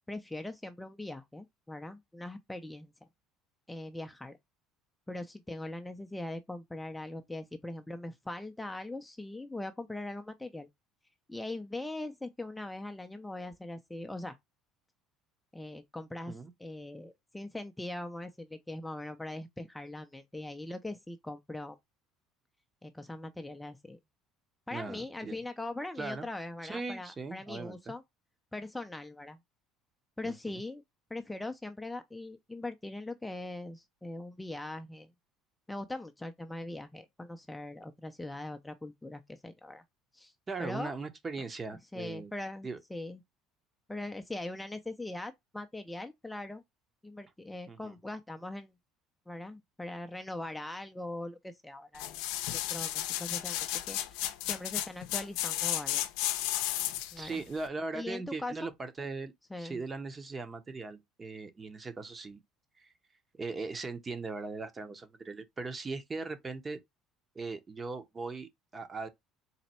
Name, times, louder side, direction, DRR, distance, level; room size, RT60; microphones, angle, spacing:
voice 1, 0.1-2.9 3.7-4.4 5.1-10.7 11.3-14.4 15.5-21.8 22.8-24.0 24.7-28.0 28.5-29.4 30.2-30.8 31.1-35.1 35.7-39.8 40.1-40.3 40.6-40.9 41.9-43.2 43.9-46.6 47.0-48.7 49.3-52.1 52.5-56.4 57.1-57.4 57.9-58.7 59.5-59.8, left 2 dB, 10° left, 0.5 m, -41 dB
voice 2, 24.7-25.4 26.0-26.3 26.6-27.9 30.2-30.6 40.5-42.3 42.6-42.8 47.7-47.9 57.2-59.3 59.6-62.4 62.8-62.9 63.4-66.8 67.3-69.1, right 3 dB, 25° right, 0.8 m, -39 dB
sound 1, 52.0-57.2 57.7-57.8, left 14 dB, 80° left, 0.5 m, -33 dB
4.1 x 2.2 x 4.2 m
supercardioid pair, 105°, 0 cm